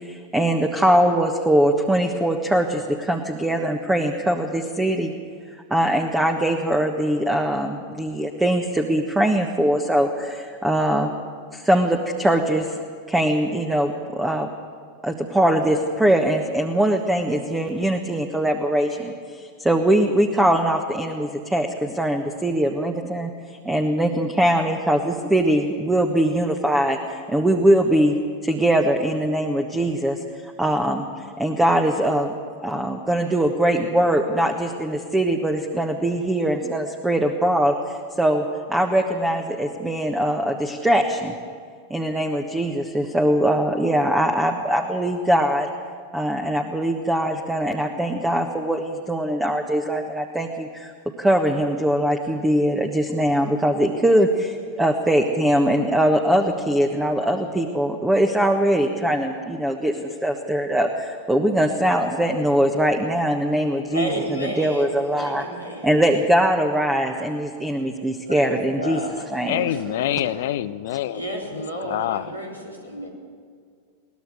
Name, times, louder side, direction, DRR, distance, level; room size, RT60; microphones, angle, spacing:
voice 1, 0.0-5.1 5.7-11.1 11.5-12.8 13.1-14.5 15.0-23.3 23.6-28.2 28.4-32.3 32.6-41.3 41.9-45.7 46.1-50.9 51.2-65.4 65.8-69.0 69.3-69.7, right 1 dB, 5° right, 4 dB, 1.4 m, -22 dB
voice 2, 63.9-66.0 68.3-70.4 71.1-73.1, equal, 90° right, -2 dB, 4.0 m, -32 dB
voice 3, 69.5-71.2 71.5-72.3, left 13 dB, 55° left, 14 dB, 0.6 m, -26 dB
22.0 x 19.0 x 6.5 m, 2.1 s
figure-of-eight pair, 90°, 0 cm